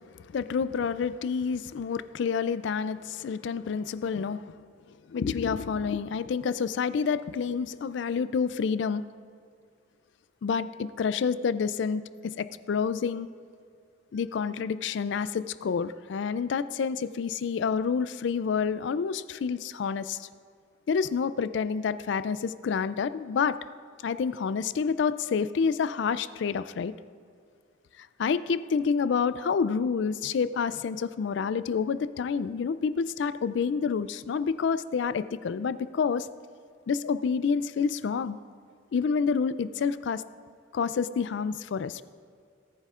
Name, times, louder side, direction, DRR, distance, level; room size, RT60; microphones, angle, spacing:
voice 1, 0.3-4.6 5.1-9.0 10.4-13.3 14.1-20.3 20.9-23.6 24.0-26.9 28.0-36.3 36.9-38.4 38.9-40.2 40.7-42.0, left 6 dB, 60° left, 15 dB, 0.3 m, -28 dB
17.5 x 9.8 x 2.4 m, 2.2 s
head